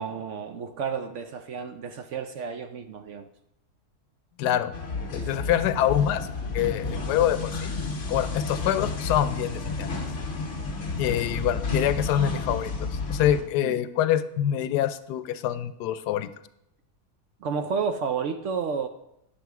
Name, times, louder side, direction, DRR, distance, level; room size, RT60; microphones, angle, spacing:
voice 1, 0.0-3.3 5.2-5.5 7.0-7.1 13.6-13.8 17.4-18.9, right 6 dB, 65° right, 8 dB, 0.8 m, -31 dB
voice 2, 4.4-4.8 5.1-6.3 6.5-7.7 8.1-9.9 11.0-16.3, left 11 dB, 90° left, 13 dB, 1.2 m, -25 dB
sound 1, 4.7-13.4, left 3 dB, 50° left, 1.5 m, -31 dB
10.0 x 6.8 x 4.6 m, 0.81 s
omnidirectional pair, 1.7 m